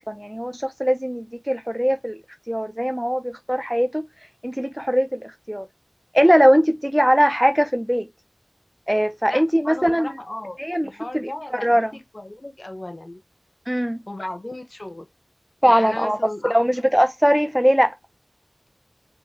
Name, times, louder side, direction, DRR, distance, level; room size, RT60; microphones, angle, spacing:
voice 1, 0.1-2.2 2.5-4.0 4.4-5.7 6.1-8.1 8.9-10.1 10.6-10.9 11.1-11.3 11.6-11.9 13.7-14.0 15.6-16.2 16.4-17.9, equal, 5° right, 0.7 m, -20 dB
voice 2, 9.3-10.6 10.8-13.2 14.1-15.0 15.7-16.7, left 1 dB, 60° left, 1.1 m, -35 dB
4.5 x 3.9 x 2.9 m
wide cardioid pair, 45°, 0 cm